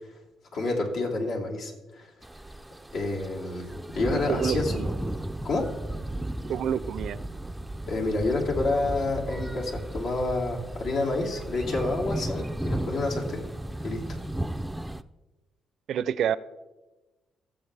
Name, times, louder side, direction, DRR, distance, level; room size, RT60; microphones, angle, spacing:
voice 1, 0.5-2.1 2.9-3.7 3.9-4.7 5.4-5.7 7.9-13.4 13.8-14.0, left 2 dB, 70° left, -1 dB, 2.7 m, -28 dB
sound 1, 2.2-15.0, right 1 dB, 5° right, 0.4 m, -34 dB
voice 2, 4.1-4.9 6.5-7.2 15.9-16.4, right 9 dB, 70° right, 16 dB, 0.5 m, -28 dB
19.5 x 7.4 x 3.4 m, 1.1 s
cardioid pair, 110°, 0 cm